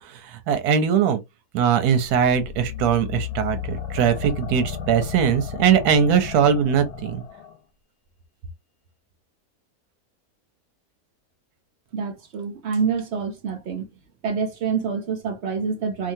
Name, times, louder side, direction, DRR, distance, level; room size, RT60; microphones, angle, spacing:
voice 1, 0.0-1.2 1.5-7.2, right 7 dB, 85° right, 1.2 m, -21 dB
sound 1, 2.0-7.6, left 8 dB, 85° left, 1.3 m, -34 dB
voice 2, 11.9-13.9 14.2-16.1, right 6 dB, 55° right, 0.8 m, -27 dB
2.8 x 2.5 x 2.6 m
omnidirectional pair, 1.6 m